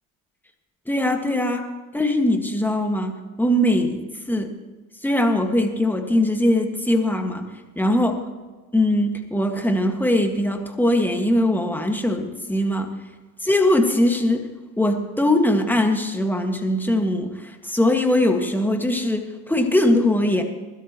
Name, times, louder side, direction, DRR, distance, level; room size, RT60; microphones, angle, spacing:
voice 1, 0.9-1.6 1.9-4.5 5.0-7.4 7.8-8.2 8.7-12.9 13.4-14.5 14.8-20.4, left 1 dB, 5° left, 3 dB, 1.8 m, -21 dB
21.0 x 12.5 x 3.1 m, 1.3 s
supercardioid pair, 100°, 40 cm